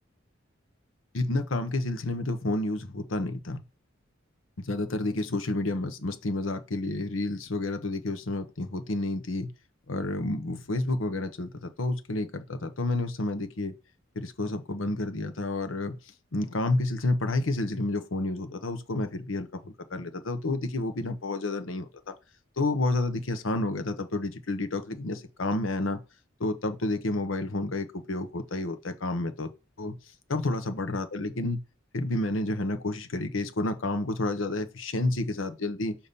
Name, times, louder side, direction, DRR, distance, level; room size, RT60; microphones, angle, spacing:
voice 1, 1.1-3.6 4.6-9.5 9.9-13.7 14.1-16.0 16.3-22.1 22.6-26.0 26.4-29.5 29.8-29.9 30.3-31.6 31.9-35.9, left 2 dB, 85° left, 0.9 m, -30 dB
6.7 x 2.9 x 5.4 m
head